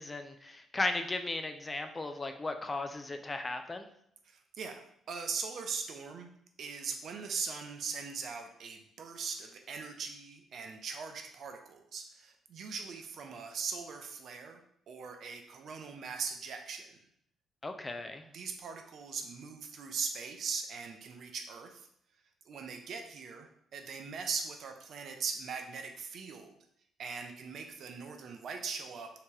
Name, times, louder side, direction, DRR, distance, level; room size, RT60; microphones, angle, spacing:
voice 1, 0.0-3.9 17.6-18.2, left 2 dB, 25° left, 7 dB, 0.4 m, -36 dB
voice 2, 4.2-6.3 6.6-14.6 14.9-16.9 18.3-21.9 22.5-26.5 27.0-29.1, right 5 dB, 65° right, 5 dB, 0.5 m, -40 dB
3.4 x 2.9 x 3.2 m, 0.70 s
cardioid pair, 90°, 0 cm